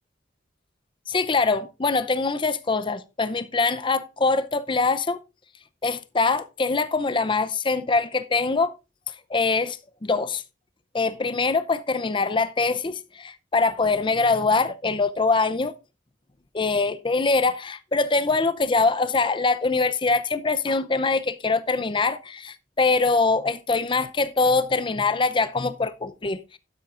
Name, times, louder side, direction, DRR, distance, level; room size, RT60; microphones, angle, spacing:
voice 1, 1.1-5.2 5.8-8.7 9.3-10.4 10.9-15.7 16.5-26.6, left 3 dB, 25° left, 0.5 m, -23 dB
12.0 x 10.0 x 2.5 m
head